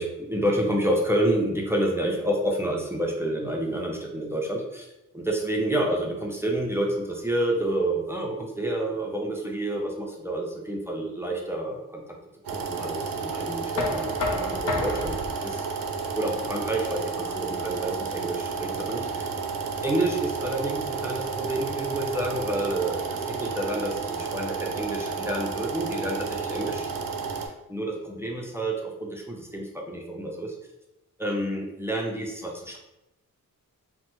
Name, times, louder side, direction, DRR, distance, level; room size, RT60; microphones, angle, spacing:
voice 1, 0.0-12.0 12.5-15.2 15.4-15.6 16.1-19.3 19.8-26.9 27.4-30.5 31.2-32.8, right 1 dB, 10° right, -1 dB, 0.4 m, -29 dB
sound 1, 12.4-27.5, right 5 dB, 80° right, 0.5 m, -32 dB
Knock, 13.8-19.6, left 2 dB, 75° left, 0.6 m, -34 dB
3.2 x 2.1 x 2.9 m, 0.90 s
wide cardioid pair, 125°, 33 cm